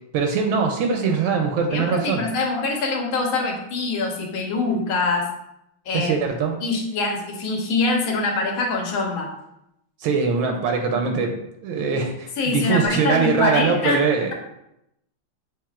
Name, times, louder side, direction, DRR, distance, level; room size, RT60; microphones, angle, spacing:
voice 1, 0.1-2.2 5.9-6.5 10.0-11.3 11.6-14.3, right 5 dB, 80° right, 3 dB, 1.4 m, -22 dB
voice 2, 1.7-5.2 5.9-6.1 6.6-9.3 12.4-14.0, left 3 dB, 75° left, 1 dB, 1.6 m, -24 dB
6.5 x 3.3 x 2.4 m, 0.82 s
omnidirectional pair, 2.3 m